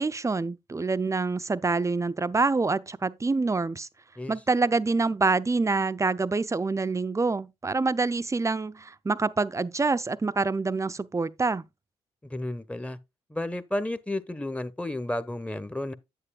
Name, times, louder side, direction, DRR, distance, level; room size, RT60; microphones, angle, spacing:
voice 1, 0.0-3.9 4.3-11.6, right 3 dB, 20° right, 0.6 m, -26 dB
voice 2, 12.2-13.0 13.3-15.9, left 1 dB, 10° left, 1.0 m, -32 dB
9.8 x 8.2 x 2.3 m
hypercardioid pair, 45°, 15 cm